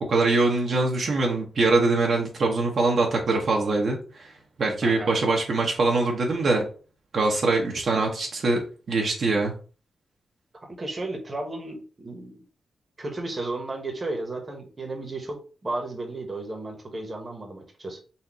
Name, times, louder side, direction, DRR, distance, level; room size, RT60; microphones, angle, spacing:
voice 1, 0.1-4.3 4.6-6.7 7.1-8.6 8.9-9.5, right 3 dB, 50° right, -1 dB, 1.0 m, -23 dB
voice 2, 4.8-5.1 10.6-12.4 13.0-18.0, right 2 dB, 25° right, 2 dB, 1.2 m, -34 dB
4.2 x 2.6 x 4.8 m, 0.37 s
wide cardioid pair, 145°, 0 cm